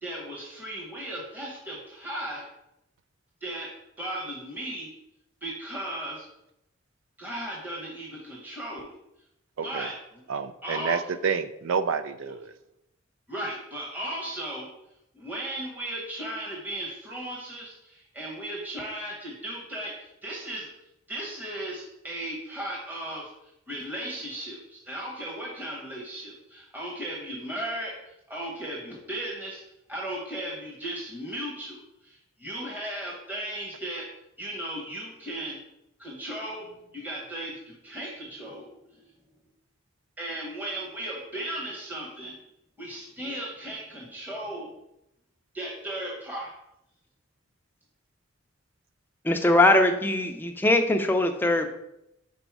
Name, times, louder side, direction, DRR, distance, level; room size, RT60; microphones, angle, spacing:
voice 1, 0.0-2.4 3.4-3.7 4.0-4.9 5.4-6.3 7.2-9.0 9.6-10.0 10.6-11.0 13.3-14.7 15.1-20.7 21.1-23.3 23.7-29.6 29.9-34.0 34.4-35.6 36.0-38.7 40.2-42.3 42.8-44.7 45.5-46.5, right 1 dB, 10° right, -4 dB, 1.0 m, -36 dB
voice 2, 9.6-9.9 10.3-12.5, right 6 dB, 75° right, 12 dB, 0.4 m, -29 dB
voice 3, 49.2-51.8, left 2 dB, 10° left, 5 dB, 0.5 m, -21 dB
5.2 x 3.9 x 4.7 m, 0.83 s
head